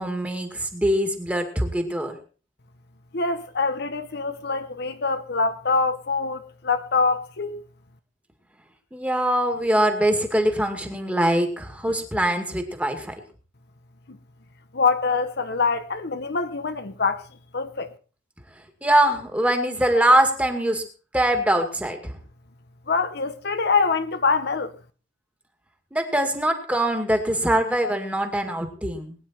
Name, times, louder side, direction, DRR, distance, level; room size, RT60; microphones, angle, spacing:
voice 1, 0.0-2.2 8.9-13.1 18.8-20.8 21.1-22.2 25.9-29.1, right 1 dB, 10° right, 2.2 m, -23 dB
voice 2, 3.1-7.6 14.1-14.2 14.7-17.2 17.5-17.9 22.9-24.7, left 4 dB, 55° left, 1.0 m, -24 dB
21.0 x 9.9 x 4.4 m
head